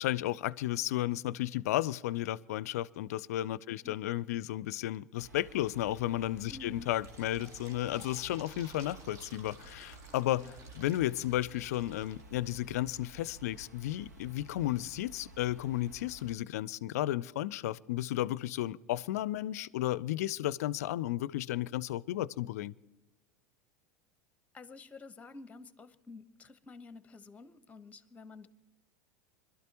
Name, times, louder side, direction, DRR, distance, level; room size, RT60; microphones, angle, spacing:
voice 1, 0.0-10.5 10.8-22.7, left 14 dB, 70° left, 0.4 m, -33 dB
voice 2, 3.7-4.6 6.5-6.9 10.3-10.5 24.5-28.5, left 3 dB, 15° left, 1.1 m, -50 dB
sound 1, 5.2-16.4, right 3 dB, 90° right, 1.6 m, -53 dB
Fill (with liquid), 6.7-12.4, right 3 dB, 35° right, 1.7 m, -55 dB
25.5 x 12.5 x 3.0 m
hypercardioid pair, 85°, 9 cm